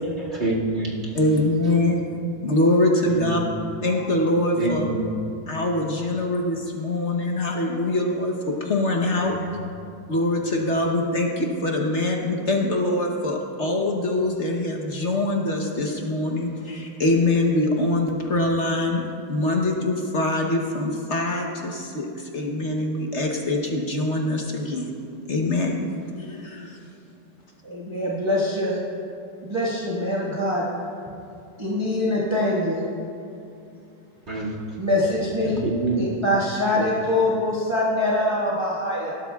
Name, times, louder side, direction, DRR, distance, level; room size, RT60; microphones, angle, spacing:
voice 1, 0.2-1.2 3.1-3.4 4.6-5.1 9.2-9.6 34.3-34.6 35.4-36.0 36.8-36.9, right 2 dB, 35° right, -4 dB, 2.3 m, -27 dB
voice 2, 1.1-2.0 2.4-3.4 3.8-4.9 5.5-9.5 10.1-24.9 25.3-25.9 26.1-26.8, left 2 dB, 45° left, 1 dB, 1.0 m, -24 dB
voice 3, 27.6-28.8 29.4-30.6 31.6-32.8 34.8-35.5 36.0-39.1, left 1 dB, 15° right, -6 dB, 1.3 m, -24 dB
20.0 x 12.0 x 2.3 m, 2.5 s
omnidirectional pair, 2.0 m